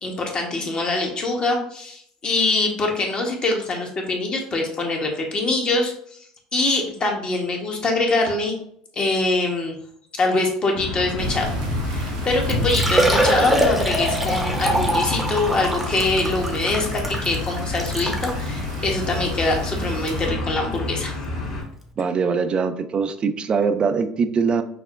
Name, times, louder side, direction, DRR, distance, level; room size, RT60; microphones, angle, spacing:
voice 1, 0.0-5.9 6.5-8.6 8.9-9.8 10.2-11.5 11.8-21.2, left 2 dB, 35° left, 1 dB, 1.0 m, -24 dB
sound 1, 10.7-21.6, left 2 dB, 80° left, 1.4 m, -30 dB
sound 2, 11.2-20.3, equal, 80° right, 0.7 m, -31 dB
Liquid, 12.0-12.1 12.5-18.4 19.1-19.2 19.6-19.7 21.4-21.5 21.6-21.7, right 1 dB, 5° right, 0.8 m, -24 dB
voice 2, 22.0-24.6, right 5 dB, 35° right, 10 dB, 0.4 m, -22 dB
5.6 x 2.1 x 2.5 m, 0.67 s
hypercardioid pair, 75°, 3 cm